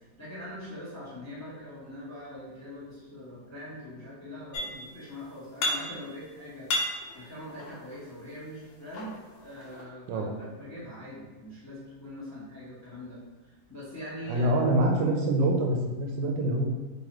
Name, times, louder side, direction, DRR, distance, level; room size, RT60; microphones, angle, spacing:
voice 1, 0.0-13.2 13.4-14.5, left 1 dB, 15° left, -8 dB, 0.6 m, -43 dB
sound 1, 4.5-5.1 5.3-6.2 6.5-8.1 8.7-9.8, left 1 dB, 90° left, 1.4 m, -33 dB
voice 2, 14.3-16.6, right 1 dB, 80° right, 1 dB, 1.3 m, -25 dB
4.0 x 2.9 x 2.9 m, 1.2 s
omnidirectional pair, 2.0 m